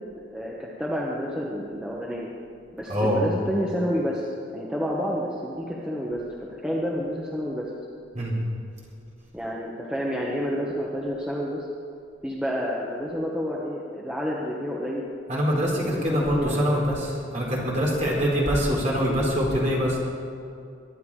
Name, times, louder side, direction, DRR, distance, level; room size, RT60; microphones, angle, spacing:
voice 1, 0.2-2.3 2.8-4.3 4.5-6.2 6.6-7.6 9.3-11.7 12.2-15.1 15.7-16.6 18.2-18.3, equal, 5° right, -4 dB, 1.3 m, -29 dB
voice 2, 15.3-20.0, equal, 35° right, -4 dB, 4.0 m, -24 dB
23.0 x 10.5 x 4.9 m, 2.4 s
head